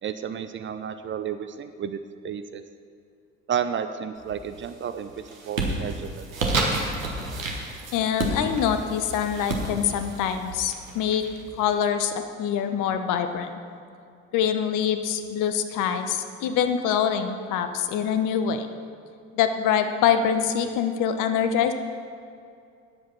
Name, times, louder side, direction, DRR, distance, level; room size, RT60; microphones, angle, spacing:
voice 1, 0.0-2.6 3.5-6.3, right 8 dB, 30° right, 9 dB, 0.6 m, -32 dB
sound 1, 4.2-4.7 5.1-11.7, right 2 dB, 80° right, 1.4 m, -30 dB
voice 2, 7.9-11.2 11.6-13.5 14.3-18.7 19.3-21.7, left 8 dB, 50° left, 8 dB, 1.0 m, -25 dB
19.5 x 7.7 x 4.2 m, 2.4 s
figure-of-eight pair, 55°, 40 cm